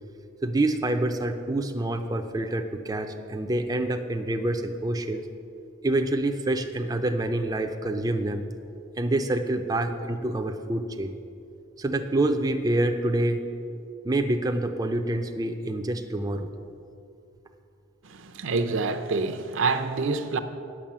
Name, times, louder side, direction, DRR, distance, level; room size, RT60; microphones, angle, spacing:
voice 1, 0.4-5.3 5.8-8.5 9.0-11.2 11.8-13.4 14.0-16.5, right 1 dB, 20° right, 0.4 m, -27 dB
voice 2, 18.0-20.4, right 4 dB, 70° right, 0.6 m, -27 dB
8.7 x 6.1 x 7.4 m
head